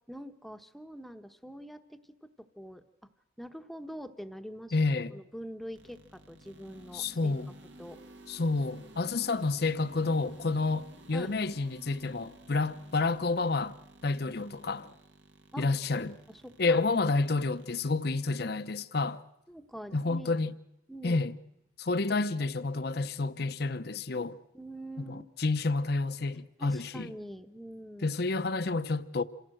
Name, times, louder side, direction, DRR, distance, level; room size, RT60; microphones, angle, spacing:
voice 1, 0.1-3.1 3.4-4.8 5.1-7.4 7.8-8.0 11.1-11.4 15.5-15.6 16.3-16.8 19.5-20.3 20.9-21.2 24.5-25.2 26.6-28.2, equal, ahead, 1.0 m, -44 dB
voice 2, 4.7-5.2 6.9-7.5 8.3-13.7 14.0-14.9 15.6-16.2 16.6-19.2 19.9-20.5 21.0-21.3 21.8-24.4 25.0-27.1 28.0-29.2, left 3 dB, 60° left, 0.8 m, -29 dB
sound 1, 5.7-17.9, right 1 dB, 80° right, 2.0 m, -54 dB
27.5 x 16.5 x 7.7 m
head